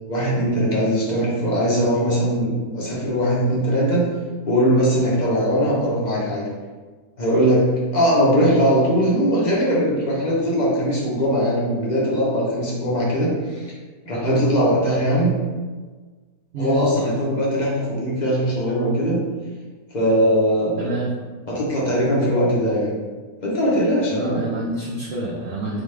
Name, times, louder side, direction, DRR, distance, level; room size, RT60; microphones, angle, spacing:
voice 1, 0.1-4.1 4.5-6.4 7.2-13.7 14.0-15.3 16.6-19.2 19.9-20.9 21.5-22.9 23.4-24.5, equal, 40° left, -6 dB, 0.7 m, -20 dB
voice 2, 16.5-16.8 20.8-21.1 24.1-25.8, right 2 dB, 60° right, -6 dB, 0.7 m, -27 dB
3.7 x 2.3 x 3.2 m, 1.4 s
omnidirectional pair, 1.6 m